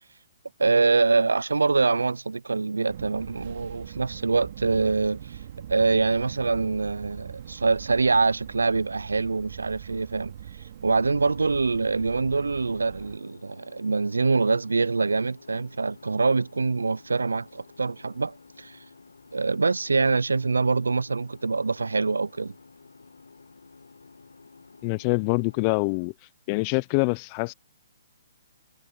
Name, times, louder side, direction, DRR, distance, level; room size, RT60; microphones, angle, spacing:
voice 1, 0.6-5.4 5.7-10.3 10.8-18.8 19.3-22.5, right 4 dB, 90° right, 0.3 m, -24 dB
Fixed-wing aircraft airplane, 2.9-13.2, right 10 dB, 55° right, 2.3 m, -42 dB
sound 1, 11.1-26.1, left 4 dB, 85° left, 1.5 m, -52 dB
voice 2, 24.8-26.1 26.5-27.5, left 32 dB, 35° left, 0.5 m, -25 dB
hypercardioid pair, 135°, 0 cm